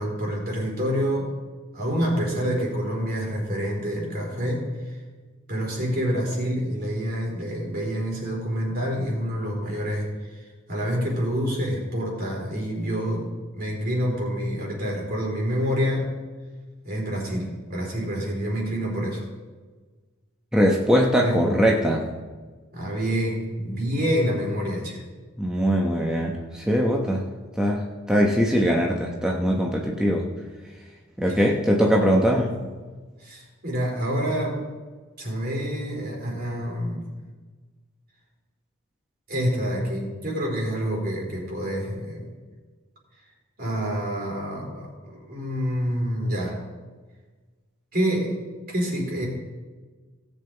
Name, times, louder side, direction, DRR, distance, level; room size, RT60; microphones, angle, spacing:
voice 1, 0.0-1.3 1.7-4.9 5.5-10.4 10.7-16.1 16.8-19.2 21.2-21.4 22.7-25.1 31.3-31.4 33.2-34.6 35.2-37.1 39.3-42.3 43.6-46.6 47.9-48.3 48.7-49.3, equal, 50° right, -2 dB, 3.7 m, -27 dB
voice 2, 20.5-22.0 25.4-27.2 27.6-30.3 31.2-32.5, equal, 5° right, -2 dB, 0.9 m, -21 dB
17.5 x 7.9 x 3.9 m, 1.4 s
head